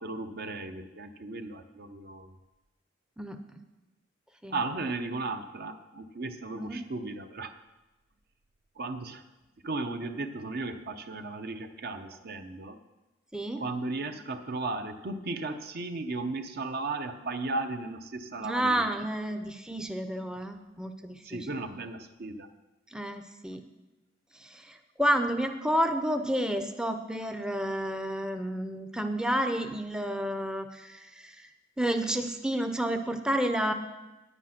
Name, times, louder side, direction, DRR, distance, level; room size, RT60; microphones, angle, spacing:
voice 1, 0.0-2.4 4.5-7.5 8.8-9.2 9.6-12.8 13.6-18.8 21.2-22.5, right 3 dB, 55° right, 8 dB, 0.7 m, -35 dB
voice 2, 6.5-6.8 13.3-13.6 18.4-21.4 22.9-23.6 24.3-31.5 31.8-33.7, equal, 5° right, 6 dB, 0.5 m, -30 dB
10.0 x 9.3 x 5.8 m, 1.1 s
head